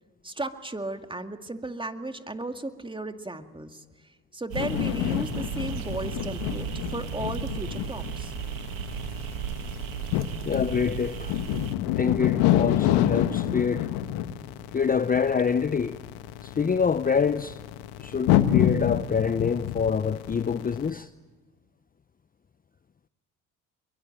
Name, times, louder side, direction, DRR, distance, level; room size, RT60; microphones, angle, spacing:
voice 1, 0.2-3.8 4.3-8.3, right 2 dB, 10° right, 2.2 m, -35 dB
sound 1, 4.5-20.9, left 12 dB, 75° left, 1.3 m, -28 dB
sound 2, 4.5-11.7, right 11 dB, 90° right, 1.7 m, -36 dB
voice 2, 10.5-11.3 11.9-13.9 14.7-16.0 16.4-17.6 18.0-21.1, left 6 dB, 20° left, 0.7 m, -26 dB
25.0 x 22.5 x 9.1 m
hypercardioid pair, 60°, 39 cm